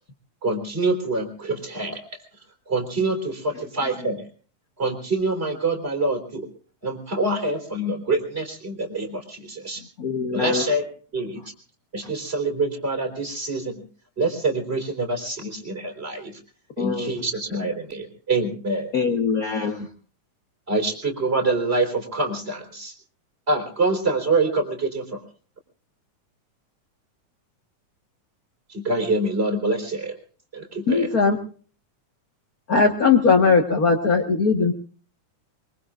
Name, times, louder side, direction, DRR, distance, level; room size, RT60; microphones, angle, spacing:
voice 1, 0.4-2.0 2.7-4.3 4.8-6.5 6.8-9.8 10.3-10.8 11.1-11.4 11.9-13.8 14.2-16.4 16.8-18.9 20.7-22.9 23.5-25.2 28.7-30.2 30.5-31.1, right 2 dB, 20° right, 3 dB, 4.1 m, -25 dB
voice 2, 3.5-4.1 9.8-10.7 12.0-12.1 16.8-17.2 18.9-19.9, left 5 dB, 55° left, 5 dB, 0.9 m, -26 dB
voice 3, 30.9-31.4 32.7-34.7, left 4 dB, 40° left, 5 dB, 1.4 m, -18 dB
24.0 x 23.5 x 2.5 m, 0.41 s
omnidirectional pair, 3.5 m